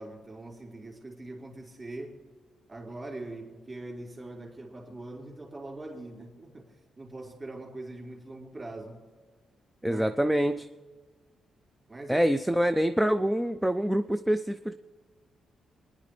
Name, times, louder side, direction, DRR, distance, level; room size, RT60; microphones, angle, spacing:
voice 1, 0.0-2.1 2.7-6.6 7.0-9.0 9.8-10.2 11.9-12.3, right 2 dB, 25° right, -1 dB, 3.5 m, -42 dB
voice 2, 9.8-10.7 12.1-14.7, equal, 5° right, 9 dB, 0.3 m, -25 dB
29.5 x 10.0 x 3.3 m, 1.5 s
cardioid pair, 145°, 0 cm